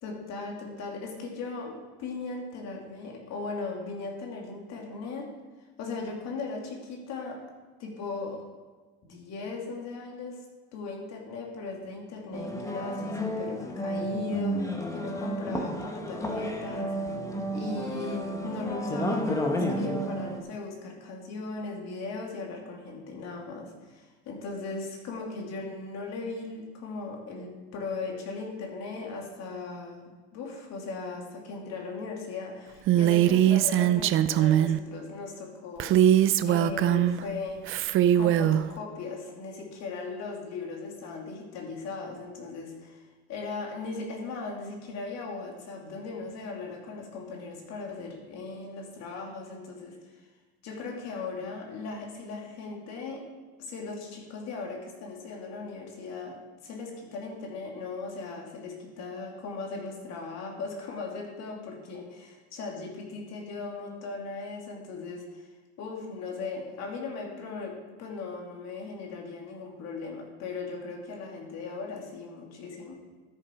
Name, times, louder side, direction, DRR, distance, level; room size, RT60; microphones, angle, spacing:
voice 1, 0.0-5.3 5.8-7.4 7.8-8.4 9.0-10.4 10.7-17.0 17.5-37.8 38.1-50.3 50.6-53.3 53.6-65.5 65.8-72.9, left 4 dB, 55° left, 1 dB, 2.5 m, -38 dB
sound 1, 12.3-20.4, equal, 10° left, 1.3 m, -31 dB
Female speech woman speaking, 32.9-34.8 35.8-37.2 37.7-38.6, right 11 dB, 40° right, 0.5 m, -22 dB
13.0 x 6.9 x 4.4 m, 1.3 s
supercardioid pair, 90°, 31 cm